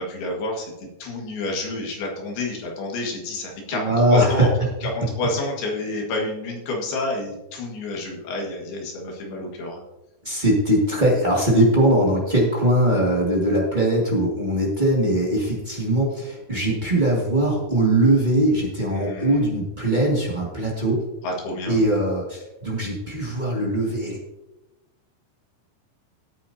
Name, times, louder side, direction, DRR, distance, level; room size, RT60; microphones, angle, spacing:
voice 1, 0.0-4.5 4.8-9.8 18.9-19.4 21.2-21.8, left 2 dB, 70° left, 0 dB, 3.7 m, -29 dB
voice 2, 3.7-4.5 10.2-21.0 21.7-24.2, right 1 dB, 35° right, -4 dB, 0.7 m, -21 dB
17.0 x 9.1 x 2.8 m, 0.99 s
omnidirectional pair, 4.9 m